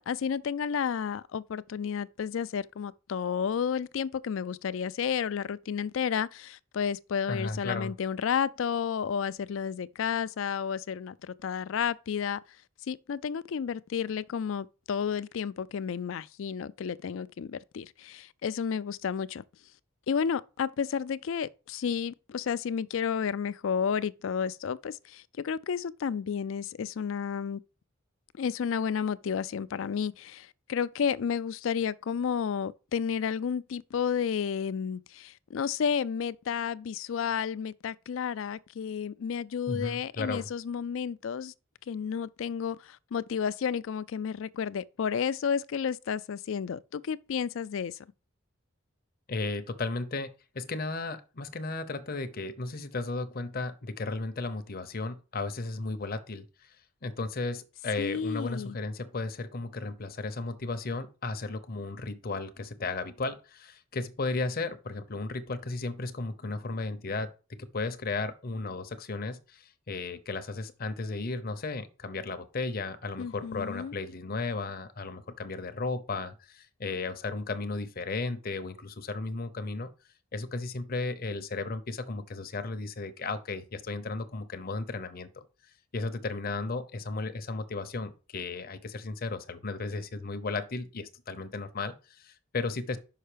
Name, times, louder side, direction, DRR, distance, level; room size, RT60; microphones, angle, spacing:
voice 1, 0.0-12.4 12.9-19.4 20.1-27.6 28.4-41.5 41.9-48.0 58.0-58.8 73.2-73.9, left 7 dB, 65° left, 0.4 m, -31 dB
voice 2, 7.3-7.9 39.7-40.5 49.3-56.7 57.0-67.3 67.6-79.9 80.3-85.4 85.9-93.0, left 3 dB, 45° left, 0.7 m, -35 dB
5.6 x 5.5 x 5.0 m
head